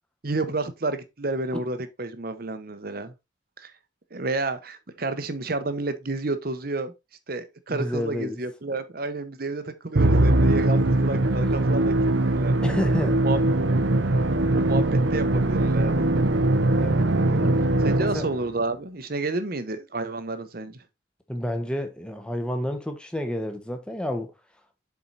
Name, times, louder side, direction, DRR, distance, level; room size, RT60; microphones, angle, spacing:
voice 1, 0.2-3.1 3.6-3.7 4.1-6.9 7.3-11.9 12.3-12.6 13.1-13.4 14.5-16.1 17.2-17.5 17.8-20.8, right 2 dB, 50° right, 0.9 m, -30 dB
voice 2, 7.7-8.4 12.6-13.2 16.8-16.9 18.0-18.3 21.3-24.3, left 1 dB, 5° left, 1.1 m, -29 dB
Musical instrument, 10.0-18.5, right 2 dB, 75° right, 0.9 m, -21 dB
7.3 x 4.7 x 4.1 m
head